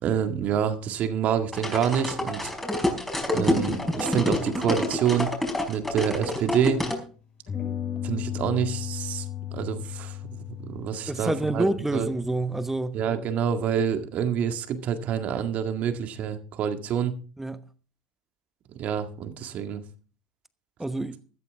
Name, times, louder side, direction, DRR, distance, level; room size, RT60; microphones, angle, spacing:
voice 1, 0.0-2.5 3.3-5.3 5.7-6.9 8.0-9.3 9.5-10.2 10.6-11.7 11.9-12.1 12.9-17.1 18.8-19.8, right 8 dB, 45° right, 1.9 m, -27 dB
sound 1, 1.5-7.0, left 1 dB, 10° left, 4.9 m, -27 dB
sound 2, 5.8-7.0 7.5-12.7, left 11 dB, 40° left, 6.3 m, -36 dB
voice 2, 11.1-13.0 17.4-17.6 20.8-21.2, right 2 dB, 10° right, 1.0 m, -27 dB
14.0 x 13.5 x 3.5 m
hypercardioid pair, 75°, 3 cm